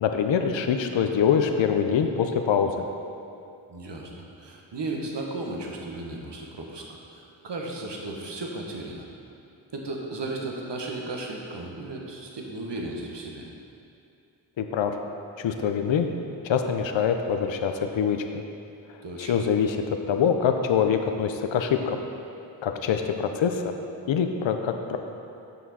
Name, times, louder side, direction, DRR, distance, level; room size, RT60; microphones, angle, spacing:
voice 1, 0.0-2.7 14.6-14.9 15.4-16.1 16.4-18.2 19.2-22.0 22.6-23.7 24.1-25.0, left 7 dB, 70° left, 6 dB, 0.6 m, -24 dB
voice 2, 3.7-4.1 4.4-9.0 9.7-13.4 19.0-19.3, right 2 dB, 60° right, 0 dB, 1.3 m, -35 dB
7.3 x 5.9 x 4.2 m, 2.6 s
cardioid pair, 40°, 47 cm